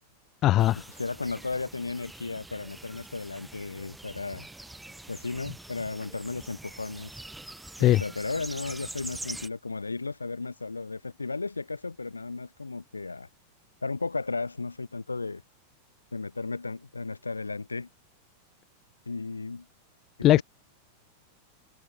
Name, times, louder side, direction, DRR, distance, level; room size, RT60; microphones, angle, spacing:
voice 1, 0.4-0.8 7.8-8.0 20.2-20.4, left 14 dB, 35° left, 0.4 m, -19 dB
sound 1, 0.6-9.5, right 2 dB, 5° right, 1.5 m, -44 dB
voice 2, 1.0-4.5 5.1-7.1 7.8-13.3 13.8-15.4 16.1-17.9 19.0-19.7 20.3-20.4, left 3 dB, 80° left, 1.7 m, -34 dB
figure-of-eight pair, 90°, 0 cm